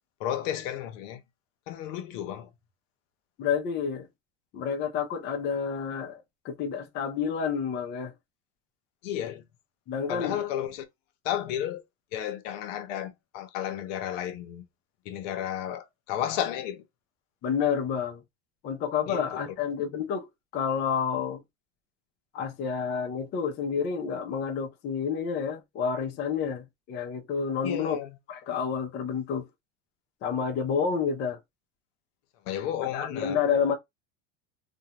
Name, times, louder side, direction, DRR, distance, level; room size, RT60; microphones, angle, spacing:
voice 1, 0.2-1.2 1.7-2.5 9.0-9.4 10.1-10.9 11.2-11.8 12.1-14.6 15.0-16.8 19.1-19.5 27.6-28.2 32.5-33.4, left 10 dB, 70° left, 0.7 m, -33 dB
voice 2, 3.4-4.1 4.5-8.1 9.9-10.4 17.4-18.2 18.6-20.3 20.5-21.4 22.3-28.0 28.3-29.5 30.2-31.4 32.9-33.7, left 6 dB, 30° left, 0.5 m, -29 dB
2.6 x 2.1 x 2.8 m
supercardioid pair, 155°, 38 cm